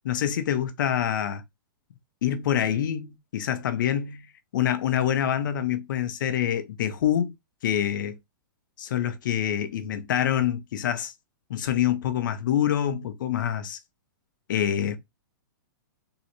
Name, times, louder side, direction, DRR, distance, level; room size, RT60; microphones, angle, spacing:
voice 1, 0.0-1.4 2.2-4.2 4.5-7.3 7.6-8.2 8.8-11.1 11.5-13.8 14.5-15.0, left 10 dB, 60° left, 0.7 m, -26 dB
3.8 x 2.1 x 2.8 m
hypercardioid pair, 155°, 12 cm